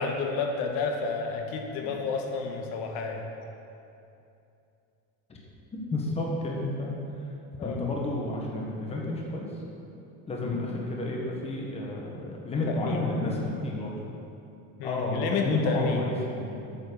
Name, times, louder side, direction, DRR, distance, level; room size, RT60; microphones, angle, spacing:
voice 1, 0.0-3.3 7.6-7.8 12.7-13.0 14.8-16.1, left 4 dB, 85° left, 3 dB, 1.3 m, -30 dB
voice 2, 5.9-6.9 7.6-9.5 10.3-13.9 14.8-16.5, left 2 dB, 15° left, -2 dB, 1.3 m, -31 dB
8.8 x 7.3 x 6.9 m, 2.7 s
cardioid pair, 175°, 36 cm